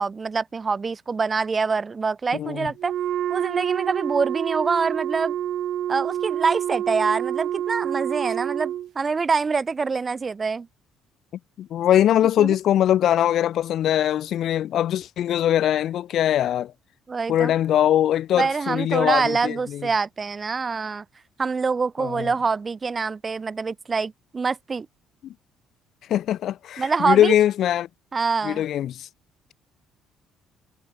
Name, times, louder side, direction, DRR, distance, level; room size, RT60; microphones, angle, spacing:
voice 1, 0.0-2.9 3.3-5.4 5.9-10.7 12.4-12.5 17.1-17.5 18.4-21.0 21.4-24.9 26.8-27.3 28.1-28.6, right 4 dB, 30° right, 0.6 m, -25 dB
voice 2, 2.3-2.7 11.6-16.7 17.3-19.9 22.0-22.3 25.2-25.3 26.1-27.9 28.4-29.1, left 11 dB, 65° left, 1.2 m, -21 dB
Wind instrument woodwind instrument, 2.8-8.9, right 11 dB, 65° right, 1.5 m, -27 dB
cardioid pair, 100°, 0 cm